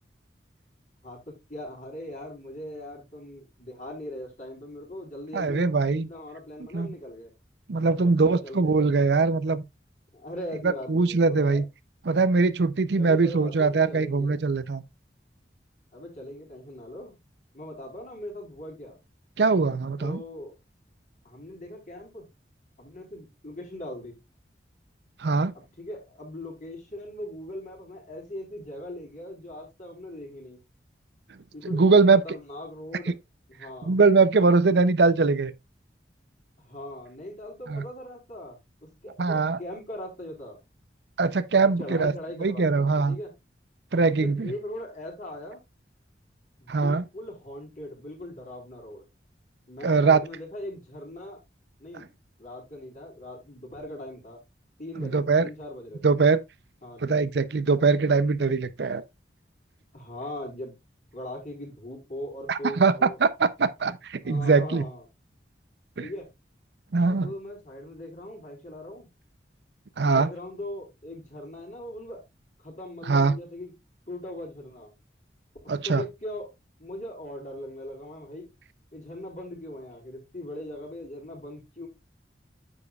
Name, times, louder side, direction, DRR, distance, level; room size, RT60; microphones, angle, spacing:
voice 1, 1.0-7.3 8.0-9.3 10.1-11.6 13.0-14.4 15.9-17.2 17.5-19.0 20.0-20.5 21.2-22.3 22.8-24.2 25.8-30.6 31.5-33.2 33.5-33.9 36.6-40.6 41.8-43.3 44.2-45.6 46.6-49.0 49.7-51.4 51.8-52.1 52.4-54.4 54.8-56.1 56.8-57.2 59.9-60.8 61.1-63.2 64.2-65.0 66.0-66.3 67.0-69.1 70.0-72.2 72.6-73.7 74.1-74.9 75.6-76.5 76.8-78.5 78.9-81.9, left 1 dB, 45° left, 4.1 m, -40 dB
voice 2, 5.3-6.1 6.7-6.9 7.7-9.6 10.6-11.6 12.0-14.8 19.4-20.2 25.2-25.5 31.6-32.2 33.9-35.5 37.7-37.8 39.2-39.6 41.2-42.1 42.4-43.2 43.9-44.5 46.7-47.0 49.8-50.2 55.0-55.5 56.0-56.4 57.0-59.0 62.5-64.8 66.0-66.1 66.9-67.3 70.0-70.3 73.1-73.3 75.7-76.0, right 4 dB, 70° right, 0.6 m, -22 dB
9.6 x 7.2 x 2.3 m
head